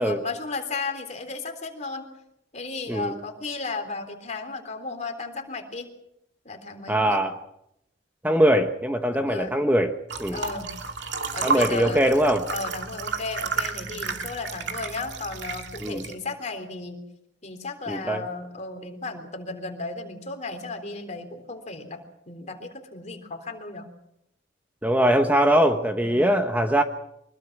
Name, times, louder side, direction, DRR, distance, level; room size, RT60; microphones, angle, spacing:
voice 1, 0.0-2.1 2.5-5.9 6.5-7.2 9.1-9.5 10.3-10.7 11.3-12.1 12.5-17.0 17.4-22.0 22.3-23.9 26.0-26.3, left 3 dB, 40° left, 5 dB, 3.6 m, -34 dB
voice 2, 6.9-7.4 8.2-9.9 10.2-10.4 11.4-12.4 15.8-16.0 17.9-18.2 24.8-26.8, right 1 dB, 10° right, 5 dB, 1.2 m, -21 dB
sound 1, 10.1-16.1, right 4 dB, 65° right, 2.5 m, -31 dB
24.5 x 21.0 x 6.1 m, 0.80 s
head